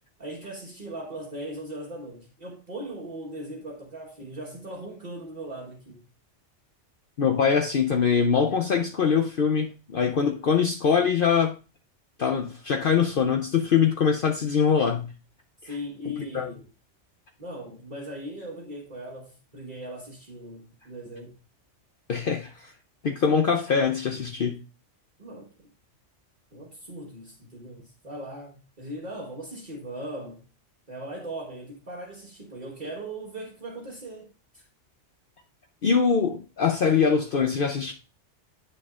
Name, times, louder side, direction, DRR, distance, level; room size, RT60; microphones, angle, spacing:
voice 1, 0.2-6.1 15.6-16.7 17.4-21.4 25.2-25.7 26.5-30.4 30.9-34.7, right 1 dB, 40° right, 1.4 m, -39 dB
voice 2, 7.2-11.5 12.2-15.1 16.3-16.5 22.1-22.7 23.0-24.6 35.8-37.9, left 6 dB, 55° left, 0.8 m, -23 dB
9.0 x 6.8 x 2.4 m
omnidirectional pair, 1.2 m